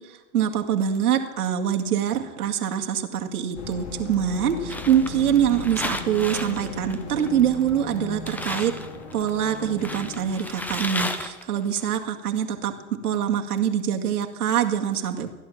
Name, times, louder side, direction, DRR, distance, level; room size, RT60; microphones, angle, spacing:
voice 1, 0.0-8.7 9.1-12.7 13.0-15.3, right 9 dB, 90° right, 3 dB, 2.1 m, -24 dB
sound 1, 3.5-10.5, left 3 dB, 50° left, 3.6 m, -37 dB
sound 2, 4.7-7.6 7.9-8.0 8.3-11.8, left 1 dB, 5° left, 0.7 m, -33 dB
15.5 x 11.0 x 7.2 m, 1.1 s
hypercardioid pair, 130°, 44 cm